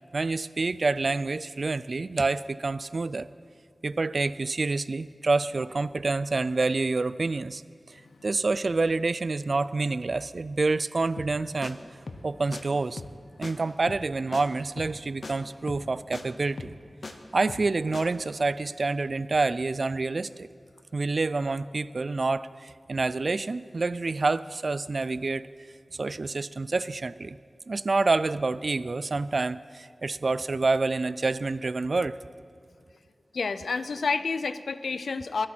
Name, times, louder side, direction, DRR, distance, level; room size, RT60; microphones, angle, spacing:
voice 1, 0.1-3.3 3.8-7.6 7.9-11.8 12.2-13.0 13.4-16.8 17.3-20.5 20.9-25.5 26.0-27.4 27.7-32.2, right 3 dB, 60° right, 17 dB, 0.3 m, -27 dB
sound 1, 11.2-11.4 11.6-11.7 12.1-12.3 12.5-12.6 13.0-13.2 13.4-13.5 13.9-14.1 14.3-14.4 14.8-15.0 15.2-15.3 15.7-16.2 16.6-17.1 17.5-17.7 17.9-18.0, left 3 dB, 65° left, 0.9 m, -39 dB
voice 2, 33.3-35.5, left 4 dB, 85° left, 14 dB, 0.4 m, -29 dB
23.5 x 8.6 x 4.4 m, 2.2 s
cardioid pair, 55°, 0 cm